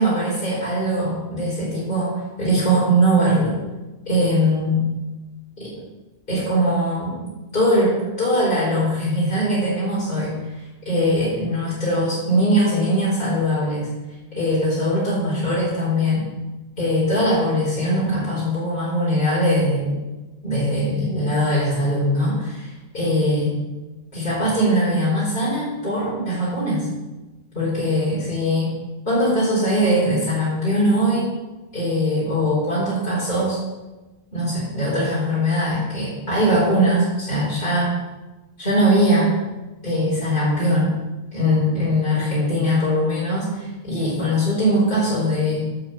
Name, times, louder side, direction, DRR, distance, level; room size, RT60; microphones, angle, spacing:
voice 1, 0.0-3.6 4.0-4.9 5.6-5.7 6.3-7.1 7.5-10.4 10.8-13.9 14.3-16.3 16.8-20.0 20.4-23.6 24.1-26.9 27.5-28.7 29.0-31.3 31.7-33.6 34.3-37.9 38.6-39.4 39.8-41.0 41.3-45.7, equal, 50° left, -8 dB, 4.9 m, -21 dB
9.1 x 7.4 x 8.1 m, 1.1 s
omnidirectional pair, 1.1 m